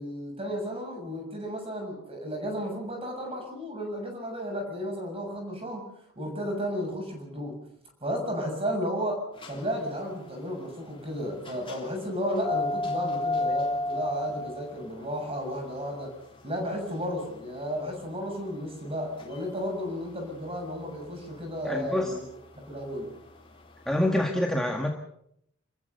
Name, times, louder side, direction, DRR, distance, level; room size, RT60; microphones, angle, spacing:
voice 1, 0.0-5.9 6.2-7.5 8.0-16.1 16.4-22.2 22.7-23.1, equal, 25° right, 2 dB, 7.2 m, -33 dB
sound 1, 9.3-24.1, left 2 dB, 25° left, 3.6 m, -35 dB
voice 2, 21.6-22.1 23.9-24.9, left 1 dB, ahead, 1 dB, 1.8 m, -26 dB
29.0 x 14.5 x 6.8 m, 0.73 s
head